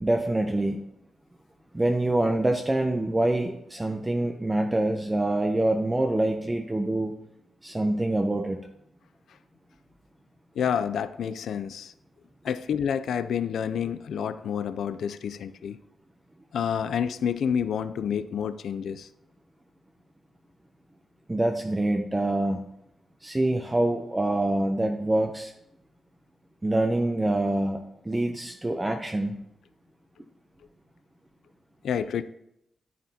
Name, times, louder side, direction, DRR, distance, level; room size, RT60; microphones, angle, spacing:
voice 1, 0.0-0.8 1.7-7.1 7.6-8.6 21.3-22.6 23.2-25.5 26.6-29.4, right 1 dB, 15° right, 0.6 m, -25 dB
voice 2, 10.6-11.9 12.4-15.8 16.5-19.1 31.8-32.2, left 8 dB, 85° left, 0.3 m, -29 dB
9.8 x 9.2 x 2.8 m
wide cardioid pair, 115°, 0 cm